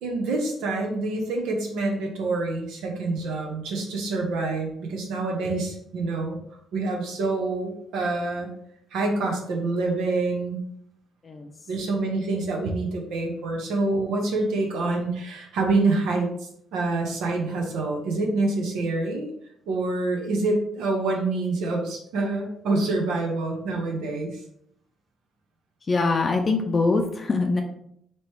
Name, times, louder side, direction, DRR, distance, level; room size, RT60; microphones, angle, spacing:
voice 1, 0.0-6.4 6.7-8.5 8.9-10.6 11.7-19.3 19.7-24.4, right 3 dB, 90° right, 0 dB, 0.8 m, -26 dB
voice 2, 11.2-11.7 25.8-27.6, left 3 dB, 35° left, 3 dB, 0.5 m, -23 dB
3.0 x 2.9 x 4.5 m, 0.72 s
cardioid pair, 90°, 0 cm